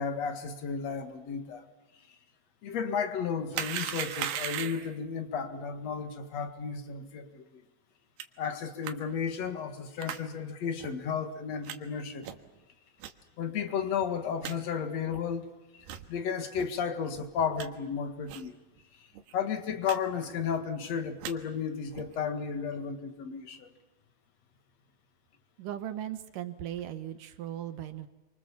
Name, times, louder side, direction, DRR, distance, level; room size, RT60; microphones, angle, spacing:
voice 1, 0.0-1.6 2.6-7.6 8.4-12.3 13.4-18.6 19.3-23.7, left 6 dB, 50° left, 8 dB, 2.6 m, -33 dB
sound 1, 3.5-5.0 8.2-8.3 8.8-8.9 10.0-10.2 10.8-10.9 11.7-11.8 12.2-12.5 13.0-13.1 13.7-13.8 14.0-14.1 14.4-14.6 15.1-15.2 15.8-16.1 16.6-16.7 17.1-17.7 18.3-18.5 18.8-18.9 19.1-19.3 19.8-20.0 20.2-20.6 21.0-21.3 21.9-22.2, right 10 dB, 85° right, 3.4 m, -37 dB
voice 2, 25.6-28.1, right 11 dB, 65° right, 10 dB, 2.6 m, -38 dB
29.5 x 24.5 x 7.3 m, 1.1 s
omnidirectional pair, 4.5 m